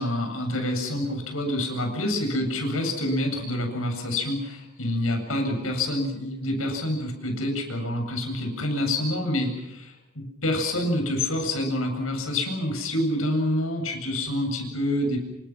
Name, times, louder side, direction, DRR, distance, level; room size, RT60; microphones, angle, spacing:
voice 1, 0.0-15.2, left 1 dB, 80° left, 4 dB, 7.8 m, -27 dB
28.5 x 26.0 x 6.1 m, 0.85 s
head